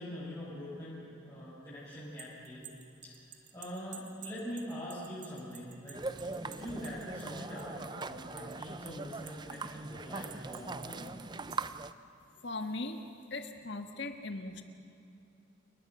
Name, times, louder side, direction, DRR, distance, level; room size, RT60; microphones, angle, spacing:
voice 1, 0.0-2.7 3.0-11.1, equal, 20° left, -12 dB, 6.7 m, -43 dB
sound 1, 1.9-8.2 8.5-9.7 10.3-10.9 11.3-11.9, right 8 dB, 60° right, 1.8 m, -52 dB
sound 2, 5.9-11.9, right 3 dB, 20° right, 0.5 m, -41 dB
voice 2, 12.4-13.0 13.3-14.6, left 2 dB, 60° left, 6 dB, 1.7 m, -39 dB
30.0 x 20.0 x 6.2 m, 2.7 s
head